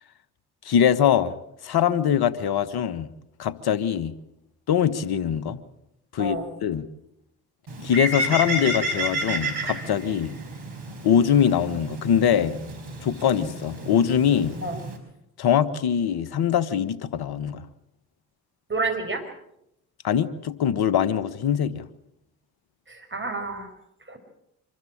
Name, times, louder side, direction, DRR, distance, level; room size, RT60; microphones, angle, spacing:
voice 1, 0.6-1.4 1.6-3.1 3.4-4.1 4.7-5.6 6.1-6.9 7.8-10.4 11.0-12.6 13.0-14.6 15.4-17.7 20.0-21.8, left 9 dB, 65° left, 16 dB, 1.3 m, -23 dB
Bird, 7.7-15.0, right 1 dB, 65° right, 5.1 m, -31 dB
voice 2, 18.7-19.2 22.9-23.7 24.1-24.2, right 3 dB, 25° right, 5 dB, 5.5 m, -29 dB
25.0 x 14.0 x 8.7 m, 0.81 s
hypercardioid pair, 45°, 42 cm